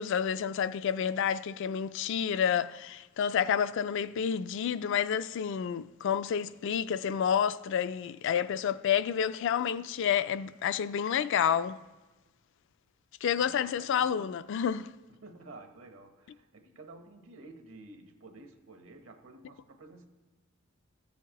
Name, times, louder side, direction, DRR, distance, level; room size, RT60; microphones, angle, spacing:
voice 1, 0.0-11.8 13.2-14.9, left 8 dB, 65° left, 0.3 m, -29 dB
voice 2, 0.9-1.3 13.3-14.3 15.1-20.1, right 2 dB, 70° right, 1.1 m, -51 dB
14.5 x 7.1 x 3.0 m
head